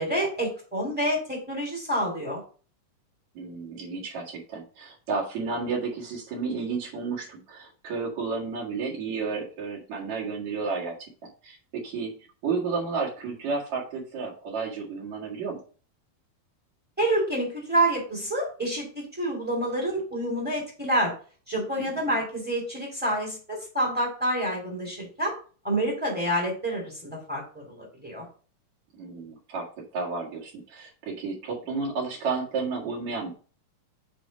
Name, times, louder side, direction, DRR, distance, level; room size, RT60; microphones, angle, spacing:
voice 1, 0.0-2.4 17.0-21.1 21.5-25.3 25.6-28.2, right 1 dB, 5° right, -2 dB, 1.8 m, -28 dB
voice 2, 3.3-10.9 11.4-12.2 12.4-15.6 21.8-22.2 28.9-29.7 29.9-33.3, right 4 dB, 55° right, -4 dB, 2.9 m, -32 dB
7.8 x 3.2 x 5.1 m, 0.38 s
omnidirectional pair, 4.2 m